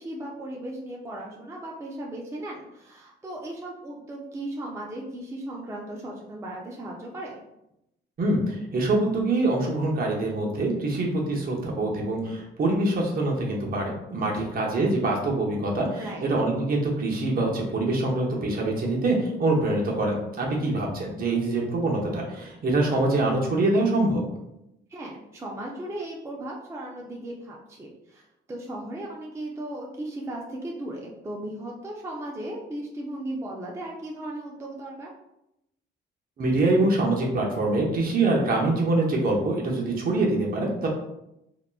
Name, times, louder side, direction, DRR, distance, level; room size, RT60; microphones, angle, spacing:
voice 1, 0.0-7.4 14.3-14.5 15.9-16.3 20.5-20.8 24.9-28.2 28.5-35.1, right 1 dB, 15° right, -2 dB, 0.4 m, -36 dB
voice 2, 8.2-24.2 36.4-40.9, right 2 dB, 50° right, -1 dB, 0.7 m, -24 dB
2.8 x 2.1 x 2.3 m, 0.84 s
cardioid pair, 90°, 20 cm